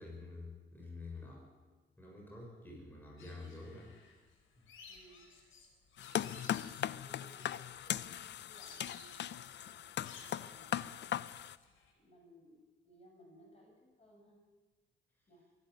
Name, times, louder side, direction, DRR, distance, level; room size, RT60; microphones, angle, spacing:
voice 1, 0.0-1.5 2.0-3.9, left 3 dB, 10° left, -1 dB, 6.6 m, -48 dB
sound 1, 3.2-11.9, left 4 dB, 80° left, 4.6 m, -58 dB
voice 2, 4.9-5.3 7.0-11.1 11.9-14.4 15.3-15.4, right 1 dB, 30° left, 0 dB, 7.1 m, -62 dB
sound 2, 6.0-11.6, left 11 dB, 65° left, 0.7 m, -39 dB
23.0 x 12.0 x 9.6 m, 1.3 s
cardioid pair, 90°, 20 cm